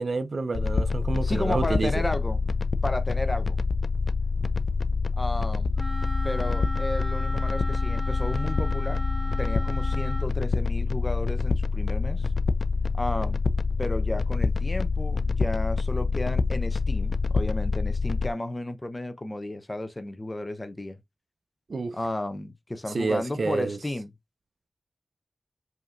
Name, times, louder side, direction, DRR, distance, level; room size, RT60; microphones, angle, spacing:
voice 1, 0.0-2.0 21.7-22.0 22.9-23.8, right 3 dB, 60° right, 0.5 m, -29 dB
sound 1, 0.5-18.3, left 4 dB, 65° left, 0.3 m, -26 dB
voice 2, 1.2-2.4 2.8-3.6 5.2-5.7 6.2-9.0 9.4-12.3 12.9-13.4 13.8-21.0 21.9-24.1, left 1 dB, 25° left, 0.6 m, -33 dB
Wind instrument woodwind instrument, 5.8-10.3, right 1 dB, 15° right, 1.1 m, -37 dB
5.1 x 2.8 x 2.4 m
wide cardioid pair, 80°, 0 cm